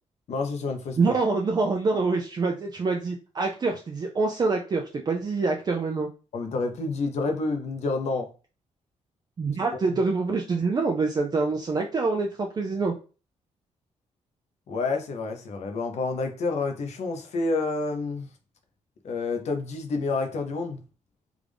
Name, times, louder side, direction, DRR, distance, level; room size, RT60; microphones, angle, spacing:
voice 1, 0.3-1.2 6.3-8.3 9.9-10.0 14.7-18.3 19.0-20.8, left 3 dB, 65° left, 0.8 m, -29 dB
voice 2, 1.0-6.1 9.4-12.9, right 3 dB, 35° right, 0.5 m, -25 dB
3.5 x 2.5 x 3.4 m
cardioid pair, 110°, 12 cm